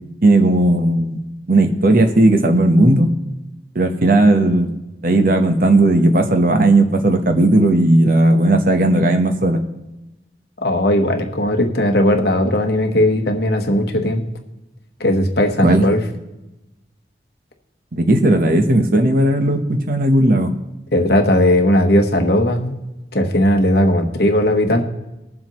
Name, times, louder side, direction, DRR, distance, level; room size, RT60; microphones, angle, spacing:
voice 1, 0.2-1.2 1.5-3.1 3.7-4.7 5.0-9.6 15.6-15.9 17.9-20.5, right 1 dB, 50° right, 6 dB, 1.0 m, -15 dB
voice 2, 10.6-14.2 15.0-16.0 20.9-22.7 23.1-24.8, left 1 dB, 60° left, 4 dB, 1.2 m, -17 dB
20.5 x 7.4 x 3.0 m, 1.0 s
head